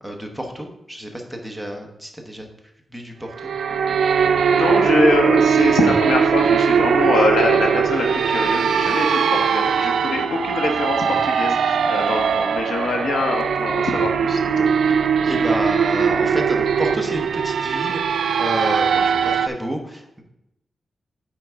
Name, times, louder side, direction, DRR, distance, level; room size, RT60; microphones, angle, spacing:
voice 1, 0.0-2.5 2.9-3.5 14.6-14.7 15.2-20.2, equal, ahead, 2 dB, 0.9 m, -30 dB
sound 1, 3.3-19.5, right 6 dB, 85° right, 0.4 m, -20 dB
voice 2, 4.5-15.0 15.2-15.5, left 2 dB, 90° left, 2 dB, 1.2 m, -23 dB
9.3 x 4.5 x 3.6 m, 0.85 s
wide cardioid pair, 165°, 0 cm